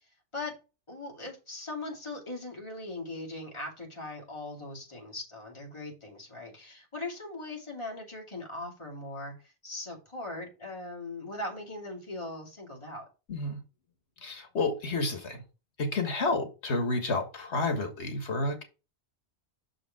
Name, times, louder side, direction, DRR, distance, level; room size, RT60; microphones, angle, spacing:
voice 1, 0.9-13.0, left 2 dB, 25° left, -1 dB, 2.7 m, -40 dB
voice 2, 13.3-13.6 14.2-15.4 15.8-18.6, left 2 dB, 70° left, 6 dB, 1.9 m, -30 dB
6.5 x 5.1 x 4.8 m, 0.31 s
omnidirectional pair, 1.2 m